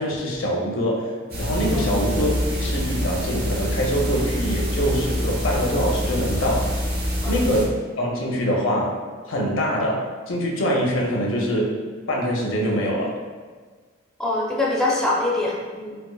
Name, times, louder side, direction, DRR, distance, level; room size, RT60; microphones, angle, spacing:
voice 1, 0.0-6.7 7.2-9.0 9.3-11.8 12.1-13.2, equal, 75° left, -2 dB, 0.6 m, -24 dB
sound 1, 1.3-7.6, equal, 50° right, 0.9 m, -26 dB
voice 2, 14.2-16.0, left 2 dB, 5° left, -5 dB, 0.4 m, -24 dB
4.4 x 2.4 x 2.3 m, 1.5 s
head